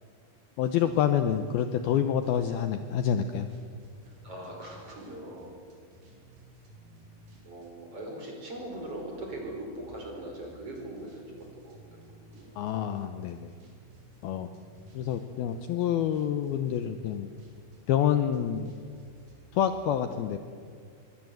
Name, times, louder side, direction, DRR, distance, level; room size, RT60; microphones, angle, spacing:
voice 1, 0.6-3.5 12.6-13.5 14.2-14.5 14.9-17.3 17.9-18.7 19.5-20.4, left 9 dB, 75° left, 9 dB, 2.4 m, -27 dB
sound 1, 0.6-7.9 8.5-19.7, right 1 dB, 60° right, 6.7 m, -55 dB
voice 2, 4.0-5.6 7.4-12.6, right 1 dB, 30° right, 1 dB, 5.7 m, -41 dB
24.5 x 23.0 x 7.8 m, 2.2 s
omnidirectional pair, 5.1 m